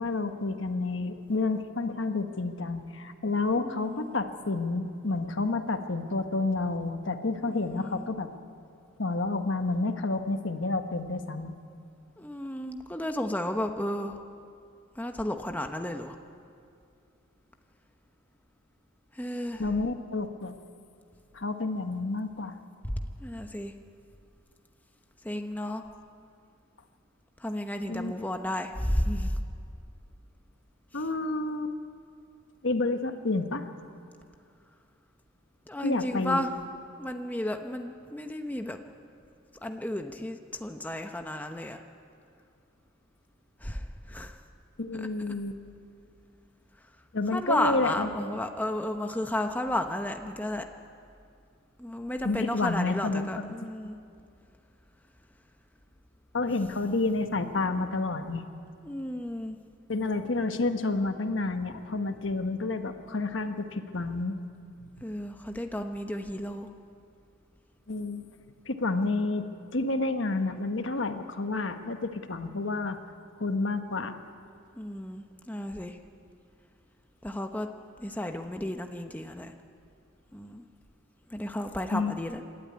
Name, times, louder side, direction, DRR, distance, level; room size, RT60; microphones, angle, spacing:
voice 1, 0.0-8.3 9.0-11.5 19.6-20.6 21.3-22.6 27.9-28.1 30.9-31.7 32.6-33.6 35.8-36.4 44.8-45.6 47.1-48.3 52.2-53.5 56.3-58.4 59.9-64.4 67.9-68.2 68.7-73.0 73.4-74.2 81.9-82.1, left 3 dB, 65° left, 7 dB, 1.2 m, -30 dB
voice 2, 3.5-4.1 7.5-8.1 12.2-14.2 15.0-16.2 19.2-19.6 22.8-22.9 23.2-23.7 25.2-25.8 27.4-29.3 35.7-36.5 37.0-38.8 39.6-41.8 43.6-44.4 47.3-50.6 51.8-54.0 58.8-59.6 65.0-66.7 74.8-76.0 77.2-77.7 78.0-79.5 80.3-80.6 81.3-82.4, left 1 dB, 10° left, 5 dB, 0.8 m, -33 dB
26.5 x 12.5 x 9.7 m, 2.4 s
head